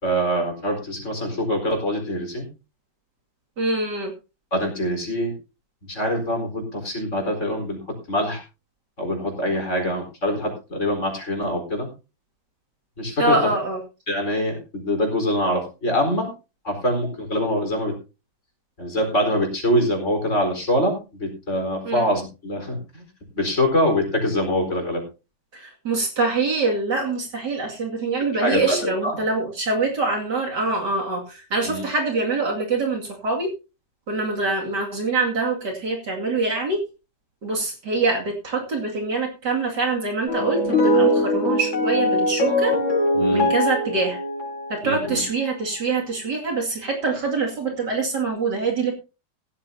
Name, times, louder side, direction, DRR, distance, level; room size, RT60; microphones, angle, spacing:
voice 1, 0.0-2.5 4.5-5.3 5.8-8.4 9.0-11.9 13.0-13.3 14.1-16.3 16.6-18.0 18.8-23.1 23.3-25.0 28.4-29.2 31.6-31.8 43.1-43.5 44.8-45.2, equal, 35° left, 2 dB, 4.8 m, -24 dB
voice 2, 3.6-4.1 13.2-13.8 21.8-22.1 25.5-33.5 34.1-36.8 37.4-42.7 43.3-44.2 44.7-49.0, right 3 dB, 60° right, 0 dB, 3.0 m, -24 dB
sound 1, 40.3-45.3, equal, 75° left, 4.4 m, -21 dB
16.0 x 13.5 x 2.8 m, 0.30 s
omnidirectional pair, 2.1 m